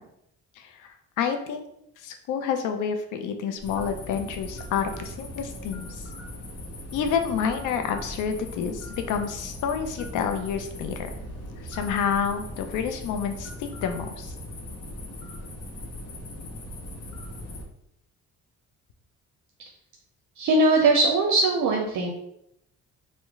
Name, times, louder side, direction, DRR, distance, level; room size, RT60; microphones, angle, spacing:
voice 1, 0.6-1.6 2.0-6.0 6.9-11.1 11.6-14.3, left 7 dB, 85° left, 6 dB, 0.5 m, -29 dB
sound 1, 3.6-17.6, left 1 dB, 50° left, 0.8 m, -39 dB
voice 2, 20.4-22.1, right 2 dB, 70° right, 0 dB, 0.5 m, -21 dB
3.1 x 2.1 x 3.5 m, 0.78 s
cardioid pair, 90°, 30 cm